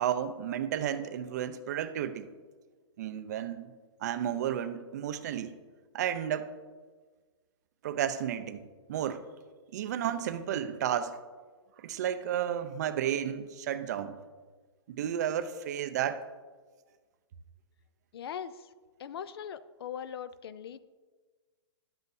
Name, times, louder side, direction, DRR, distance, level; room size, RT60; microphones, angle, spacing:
voice 1, 0.0-2.3 3.0-3.6 4.0-5.5 5.9-6.5 7.8-9.2 9.7-11.2 11.8-14.2 14.9-16.2, right 10 dB, 35° right, 11 dB, 0.5 m, -32 dB
voice 2, 18.1-18.7 19.0-20.8, left 8 dB, 55° left, 16 dB, 0.4 m, -40 dB
12.0 x 8.0 x 2.6 m, 1.4 s
hypercardioid pair, 165°, 16 cm